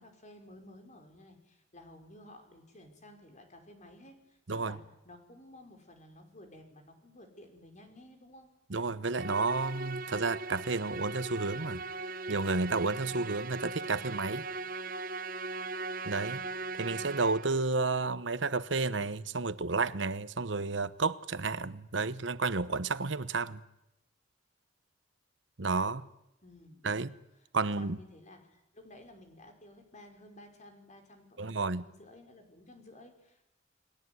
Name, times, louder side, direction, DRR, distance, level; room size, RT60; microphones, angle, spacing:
voice 1, 0.0-8.5 26.4-27.0 27.4-33.4, left 1 dB, 40° left, 5.5 m, -54 dB
voice 2, 8.7-11.8 12.3-14.4 16.1-16.4 16.8-23.6 25.6-26.0 26.8-27.1 27.5-28.0 31.4-31.8, right 3 dB, 70° right, 1.0 m, -31 dB
Musical instrument, 9.1-17.7, right 3 dB, 50° right, 1.3 m, -39 dB
30.0 x 21.0 x 9.6 m
head